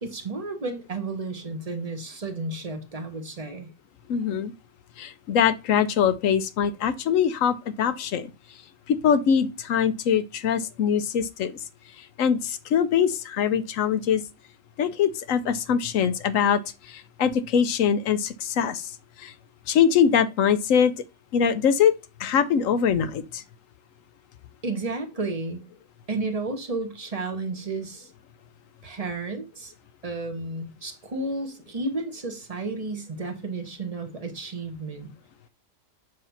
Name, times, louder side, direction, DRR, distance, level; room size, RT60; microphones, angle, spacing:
voice 1, 0.0-3.7 24.6-25.6 26.1-28.1 28.8-29.7 30.0-35.1, right 3 dB, 25° right, 1.0 m, -32 dB
voice 2, 4.1-4.5 5.0-8.3 8.9-11.6 12.2-14.2 14.8-19.3 19.7-20.9 21.3-21.9 22.2-23.4, left 7 dB, 65° left, 0.9 m, -23 dB
7.8 x 2.8 x 5.7 m
omnidirectional pair, 1.7 m